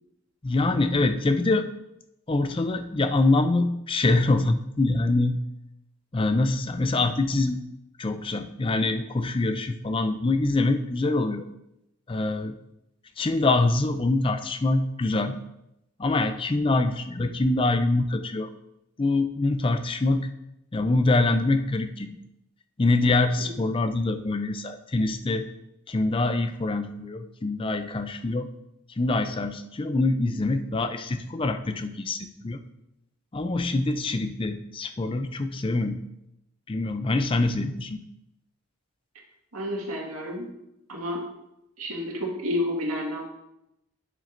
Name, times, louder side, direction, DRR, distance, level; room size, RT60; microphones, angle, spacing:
voice 1, 0.4-1.7 2.3-5.4 6.1-7.6 8.0-11.4 12.1-12.5 13.2-15.4 16.0-18.5 19.0-20.3 20.7-22.2 22.8-25.4 25.9-28.5 29.0-32.6 33.3-36.0 36.7-38.0, left 2 dB, 25° left, 9 dB, 0.4 m, -24 dB
voice 2, 39.5-40.5 40.9-41.2 41.8-43.3, left 1 dB, 85° right, -1 dB, 1.9 m, -30 dB
10.0 x 7.4 x 2.6 m, 0.85 s
head